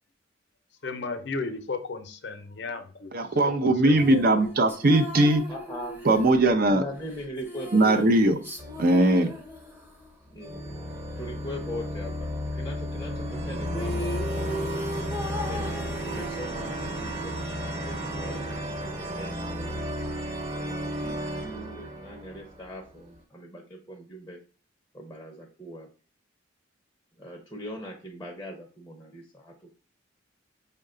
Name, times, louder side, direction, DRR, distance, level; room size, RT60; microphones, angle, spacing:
voice 1, 0.8-3.1 3.4-4.2, left 3 dB, 60° left, 0.6 m, -34 dB
voice 2, 3.1-5.4 6.1-6.8 7.7-8.4 8.8-9.3, right 1 dB, 50° right, 0.6 m, -20 dB
sound 1, 3.9-10.1 13.4-13.5 13.7-16.9, equal, 10° right, 0.8 m, -38 dB
voice 3, 5.5-6.1 6.4-8.1 10.3-10.6 11.2-13.1 13.5-14.9 15.4-19.9 20.6-24.4 24.9-25.9 27.2-29.5, equal, 15° left, 0.6 m, -41 dB
sound 2, 8.6-9.8 10.4-23.0, equal, 35° right, 1.1 m, -33 dB
5.4 x 2.2 x 3.7 m
head